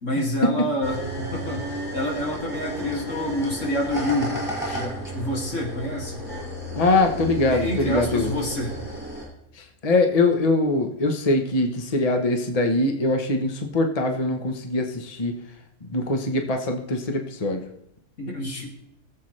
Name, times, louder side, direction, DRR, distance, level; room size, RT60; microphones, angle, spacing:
voice 1, 0.0-4.4 4.7-6.2 7.5-8.8 18.2-18.7, left 1 dB, 80° left, -1 dB, 2.7 m, -28 dB
sound 1, 0.8-9.2, equal, 10° right, 5.3 m, -33 dB
voice 2, 6.7-8.3 9.5-15.4 15.8-17.7, left 2 dB, 30° left, 4 dB, 1.1 m, -23 dB
22.0 x 7.7 x 3.2 m, 0.79 s
omnidirectional pair, 1.3 m